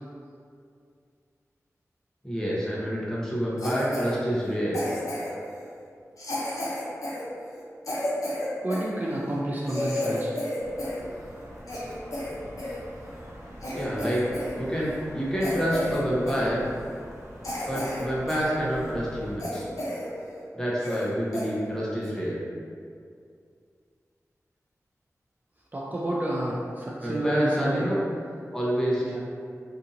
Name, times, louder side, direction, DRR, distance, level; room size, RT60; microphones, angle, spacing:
voice 1, 2.2-4.8 13.7-14.2 14.6-16.6 17.7-19.7 20.5-22.4 27.0-28.0 28.5-29.1, equal, 10° left, -7 dB, 0.8 m, -28 dB
Cough, 3.6-4.1 4.7-5.4 6.2-8.9 9.3-9.4 9.7-11.0 11.3-12.8 13.2-13.3 13.6-14.5 14.8-15.0 15.4-16.0 16.3-16.5 17.0-17.1 17.4-18.5 18.9-19.0 19.4-20.1 20.4-20.5 20.8-21.1 21.3-21.5 22.0-22.2, left 1 dB, 70° left, 0.6 m, -32 dB
voice 2, 8.6-10.3 25.7-27.9 29.0-29.2, right 1 dB, 30° right, -4 dB, 0.3 m, -29 dB
sound 1, 10.6-19.4, equal, 70° right, 0.7 m, -44 dB
2.7 x 2.5 x 2.5 m, 2.3 s
wide cardioid pair, 55°, 6 cm